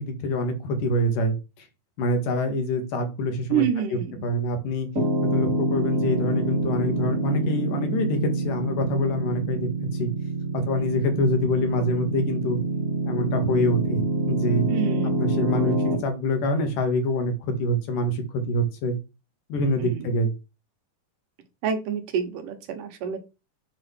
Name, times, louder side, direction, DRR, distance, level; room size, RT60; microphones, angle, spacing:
voice 1, 0.0-1.4 2.0-3.6 4.2-4.9 5.3-9.7 10.0-10.1 10.6-12.6 13.1-14.7 15.2-19.0 19.5-20.3, left 1 dB, 85° left, 6 dB, 3.2 m, -25 dB
voice 2, 3.5-4.3 14.7-15.1 19.8-20.1 21.6-23.2, right 8 dB, 90° right, 6 dB, 2.9 m, -27 dB
Piano, 4.9-16.0, right 2 dB, 30° right, 2.8 m, -26 dB
7.6 x 4.0 x 6.1 m, 0.29 s
omnidirectional pair, 3.7 m